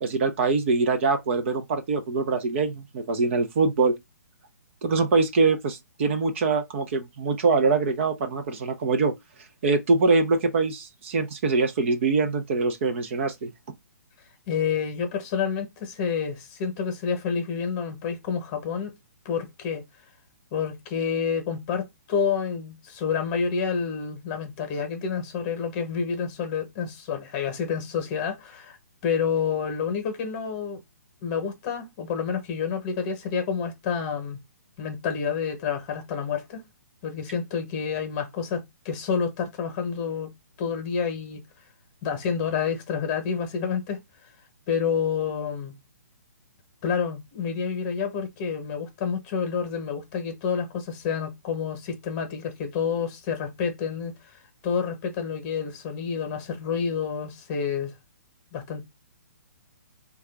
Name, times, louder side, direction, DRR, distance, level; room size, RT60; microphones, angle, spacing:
voice 1, 0.0-4.0 4.8-9.1 9.6-13.5, right 4 dB, 45° right, 0.6 m, -23 dB
voice 2, 14.5-18.9 19.2-19.8 20.5-28.8 29.0-30.8 31.2-34.4 34.8-36.6 37.0-40.3 40.6-41.4 42.0-44.0 44.7-45.7 46.8-54.1 54.6-57.9 58.5-58.8, left 6 dB, 30° left, 1.0 m, -29 dB
3.6 x 2.4 x 3.3 m
figure-of-eight pair, 130°, 9 cm